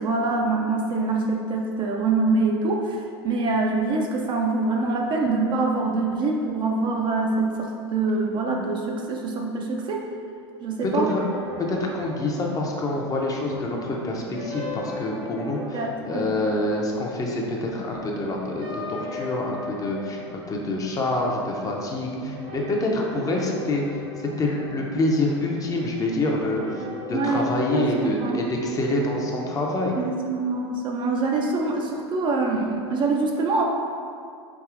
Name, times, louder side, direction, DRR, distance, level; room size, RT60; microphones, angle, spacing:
voice 1, 0.0-10.1 10.6-11.1 15.7-16.4 27.1-28.4 30.0-33.6, right 3 dB, 35° right, 0 dB, 0.4 m, -25 dB
voice 2, 10.8-11.2 11.7-20.2 20.5-23.8 24.4-29.9, left 2 dB, 25° left, -1 dB, 0.6 m, -26 dB
sound 1, 11.0-29.6, left 2 dB, 65° right, 1.3 m, -38 dB
4.6 x 2.7 x 2.4 m, 2.3 s
hypercardioid pair, 95°, 15 cm